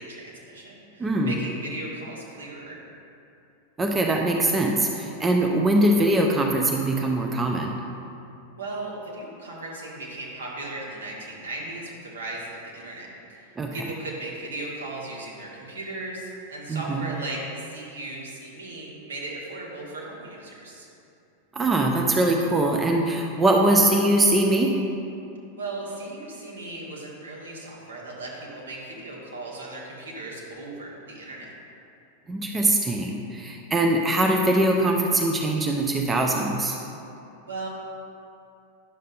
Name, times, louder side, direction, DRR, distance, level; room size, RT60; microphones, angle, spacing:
voice 1, 0.0-2.8 8.6-20.9 25.6-31.5 37.5-37.7, right 2 dB, 65° right, -4 dB, 1.5 m, -37 dB
voice 2, 1.0-1.4 3.8-7.8 13.6-13.8 16.7-17.1 21.5-24.8 32.3-36.8, right 1 dB, 15° right, 1 dB, 0.5 m, -22 dB
9.9 x 6.5 x 2.5 m, 2.7 s
figure-of-eight pair, 90°, 0 cm